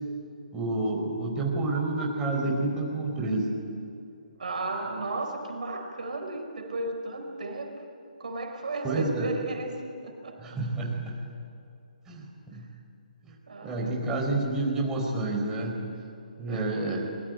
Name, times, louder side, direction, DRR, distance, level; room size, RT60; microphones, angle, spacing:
voice 1, 0.5-3.5 8.8-9.3 10.4-11.2 12.1-12.6 13.2-13.3 13.6-15.9 16.4-17.1, right 2 dB, 10° right, -1 dB, 4.4 m, -29 dB
voice 2, 4.4-7.7 8.2-10.6 12.5-12.6 13.5-14.1 16.5-16.7, right 2 dB, 65° right, 4 dB, 4.8 m, -34 dB
24.5 x 23.0 x 8.9 m, 2.7 s
figure-of-eight pair, 140°, 5 cm